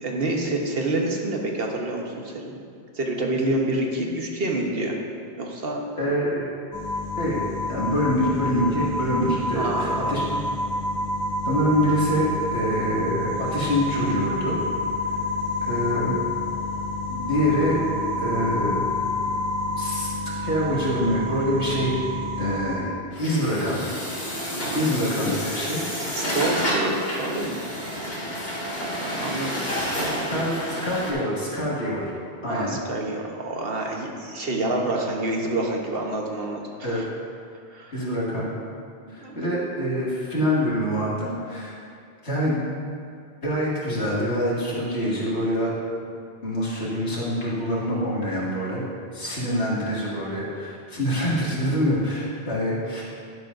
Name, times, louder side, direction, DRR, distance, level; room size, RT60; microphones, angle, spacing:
voice 1, 0.0-2.6 2.9-5.0 5.4-5.8 9.5-10.0 24.5-24.8 26.1-27.6 29.1-30.1 30.3-30.4 32.4-37.0 37.7-37.9 39.1-39.4, right 2 dB, 60° right, 0 dB, 1.3 m, -28 dB
voice 2, 6.0-6.5 7.2-7.4 7.7-10.4 11.4-14.6 15.0-15.1 15.6-16.2 17.1-17.8 18.2-18.9 19.8-20.1 20.4-22.0 22.4-23.8 24.7-25.8 26.2-26.4 30.3-32.1 32.4-32.8 36.8-37.0 37.9-38.5 39.1-41.7 42.2-42.6 43.4-45.7 46.4-48.8 49.1-53.0, equal, 80° left, -7 dB, 2.5 m, -25 dB
sound 1, 6.7-22.8, left 1 dB, 5° left, 1.9 m, -28 dB
Truck, 23.1-31.1, equal, 65° left, 2.6 m, -29 dB
11.0 x 10.5 x 2.6 m, 2.3 s
omnidirectional pair, 1.1 m